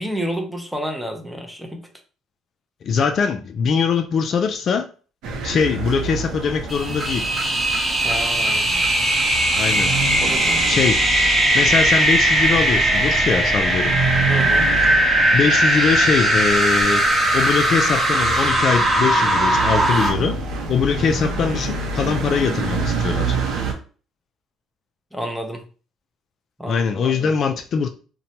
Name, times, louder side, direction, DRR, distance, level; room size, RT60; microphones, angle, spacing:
voice 1, 0.0-1.9 8.0-8.7 10.2-10.8 14.3-14.7 25.1-25.6 26.6-27.3, equal, ahead, 0.6 m, -30 dB
voice 2, 2.8-4.9 5.4-7.2 9.6-9.9 10.6-11.0 11.5-14.0 14.8-17.0 17.3-20.4 20.7-23.4 26.7-27.9, left 6 dB, 50° left, 0.3 m, -22 dB
sound 1, 5.2-23.7, right 3 dB, 80° right, 0.6 m, -28 dB
sound 2, 6.7-20.1, right 1 dB, 15° right, 0.9 m, -19 dB
2.9 x 2.1 x 2.7 m
cardioid pair, 95°, 0 cm